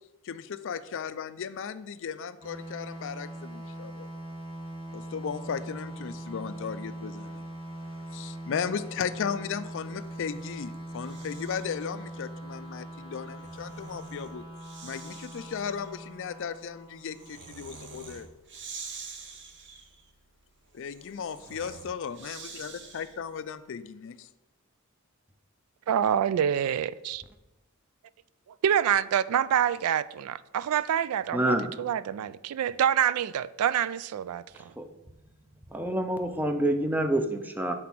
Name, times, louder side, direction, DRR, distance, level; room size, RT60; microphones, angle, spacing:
voice 1, 0.2-4.1 4.9-7.5 7.9-14.4 14.8-18.3 20.7-24.3, left 7 dB, 60° left, 0.4 m, -36 dB
sound 1, 2.4-17.8, right 1 dB, 25° right, 1.6 m, -41 dB
Breathing, 9.9-11.8 13.1-23.4, right 5 dB, 55° right, 0.9 m, -47 dB
voice 2, 25.9-27.2 28.6-34.7, right 9 dB, 80° right, 0.3 m, -26 dB
voice 3, 31.3-31.7 34.8-34.9 35.7-37.7, right 1 dB, 10° right, 0.5 m, -27 dB
7.6 x 4.0 x 5.9 m
head